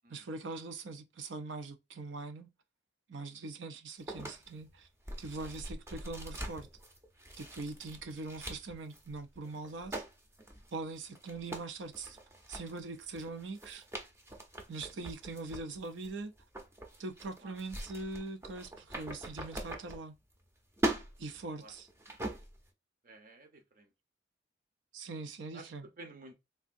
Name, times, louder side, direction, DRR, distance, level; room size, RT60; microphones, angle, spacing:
voice 1, 0.1-2.5 3.1-4.9 5.2-6.7 7.4-10.0 10.7-12.2 12.5-13.8 14.7-16.3 17.0-20.2 21.2-21.9 24.9-25.9, right 3 dB, 80° right, 0.6 m, -42 dB
sound 1, 4.1-20.5 20.7-22.7, right 1 dB, 15° right, 0.6 m, -42 dB
voice 2, 23.0-23.9 25.5-25.7 26.0-26.3, right 2 dB, 50° right, 0.8 m, -53 dB
3.5 x 2.6 x 2.5 m
head